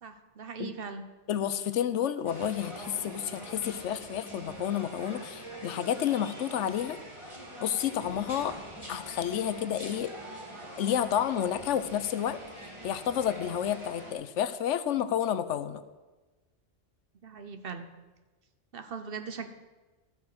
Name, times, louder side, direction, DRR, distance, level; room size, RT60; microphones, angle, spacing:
voice 1, 0.0-1.0 17.2-17.9 18.7-19.5, right 5 dB, 55° right, 9 dB, 1.0 m, -39 dB
voice 2, 1.3-7.0 7.6-8.6 8.9-10.1 10.8-12.4 12.8-15.8, left 9 dB, 90° left, 12 dB, 1.0 m, -30 dB
sound 1, 2.2-14.1, right 1 dB, 25° right, 2.1 m, -44 dB
13.0 x 7.3 x 6.0 m, 1.2 s
omnidirectional pair, 1.2 m